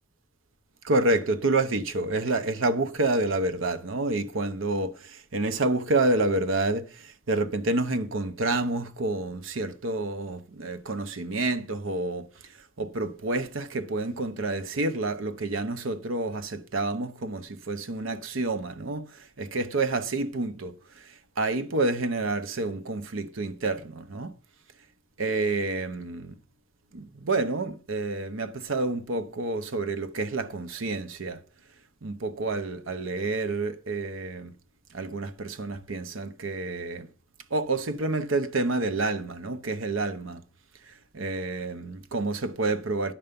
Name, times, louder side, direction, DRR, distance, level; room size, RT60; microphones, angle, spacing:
voice 1, 0.8-12.3 12.8-24.3 25.2-26.4 26.9-31.4 32.0-34.5 34.9-37.1 37.5-40.4 40.9-43.1, right 2 dB, 80° right, 0.9 m, -29 dB
10.0 x 6.8 x 5.2 m
head